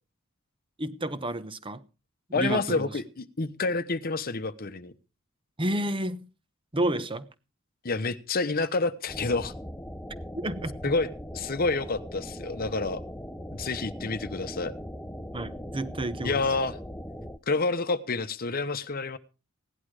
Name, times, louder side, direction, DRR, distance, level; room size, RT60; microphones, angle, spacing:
voice 1, 0.8-1.8 2.3-2.9 5.6-6.3 6.7-7.3 10.3-10.8 15.3-16.4, right 1 dB, 25° right, 1.0 m, -30 dB
voice 2, 2.3-4.9 7.8-9.5 10.8-13.0 13.5-14.7 16.2-16.8 17.5-19.2, left 3 dB, 45° left, 0.9 m, -28 dB
sound 1, 9.1-17.4, equal, 10° left, 0.8 m, -40 dB
17.0 x 11.0 x 4.8 m
head